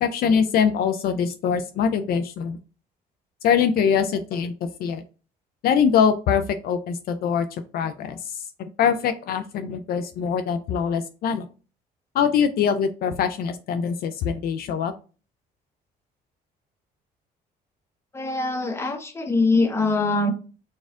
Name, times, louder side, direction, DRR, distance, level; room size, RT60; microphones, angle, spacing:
voice 1, 0.0-2.6 3.4-4.5 4.8-5.0 5.6-8.3 8.8-11.5 12.1-14.9, left 7 dB, 65° left, 9 dB, 0.4 m, -23 dB
voice 2, 18.1-20.3, left 3 dB, 15° left, 5 dB, 0.8 m, -23 dB
4.2 x 2.3 x 3.5 m, 0.35 s
cardioid pair, 110°, 17 cm